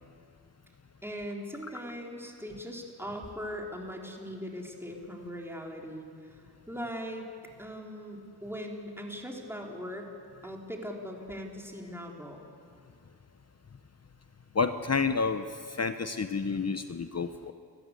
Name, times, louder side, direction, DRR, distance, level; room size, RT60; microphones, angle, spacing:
voice 1, 1.0-7.3 7.6-10.1 10.4-12.5, equal, 5° right, 0 dB, 3.7 m, -40 dB
voice 2, 14.5-17.5, left 4 dB, 40° left, 9 dB, 0.9 m, -30 dB
29.5 x 14.5 x 8.3 m, 2.4 s
wide cardioid pair, 75°, 40 cm